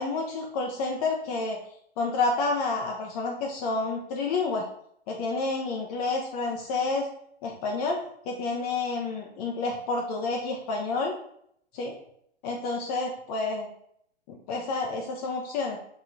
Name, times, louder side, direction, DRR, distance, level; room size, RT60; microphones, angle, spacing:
voice 1, 0.0-1.6 2.0-4.6 5.1-7.1 7.4-8.0 8.3-11.1 11.7-11.9 12.4-13.7 14.3-15.8, left 3 dB, 35° left, 0 dB, 0.6 m, -29 dB
4.8 x 3.0 x 2.5 m, 0.69 s
hypercardioid pair, 120°, 32 cm